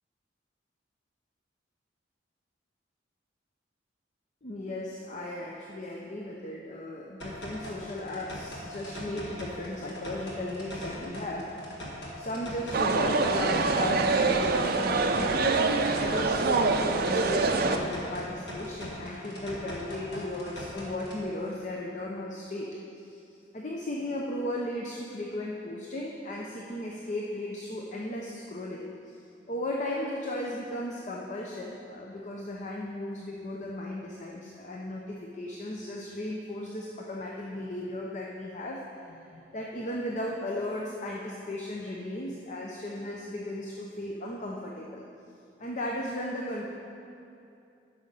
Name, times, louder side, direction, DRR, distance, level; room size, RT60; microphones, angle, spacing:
voice 1, 4.4-11.4 12.2-22.7 22.9-23.2 23.5-28.8 29.5-38.8 39.1-45.0 45.6-46.7, left 1 dB, 40° left, -2 dB, 0.6 m, -36 dB
sound 1, 7.2-21.2, equal, 65° left, 1.7 m, -41 dB
sound 2, 12.7-17.8, right 3 dB, 50° right, 0.5 m, -25 dB
8.9 x 6.3 x 5.5 m, 2.6 s
head